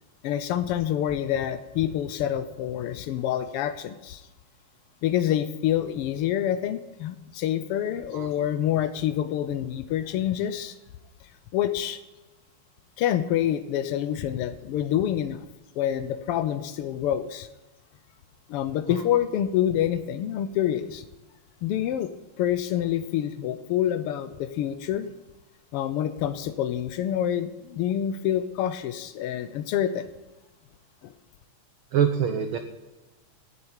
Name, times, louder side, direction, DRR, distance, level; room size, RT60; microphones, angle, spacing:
voice 1, 0.2-4.3 5.0-10.8 11.5-12.0 13.0-15.5 15.7-17.5 18.5-21.0 21.6-22.1 22.4-25.1 25.7-30.1 31.0-31.1, left 11 dB, 90° left, 11 dB, 1.2 m, -27 dB
voice 2, 31.9-32.6, right 8 dB, 75° right, 7 dB, 1.2 m, -24 dB
15.5 x 8.0 x 8.9 m, 1.1 s
omnidirectional pair, 3.4 m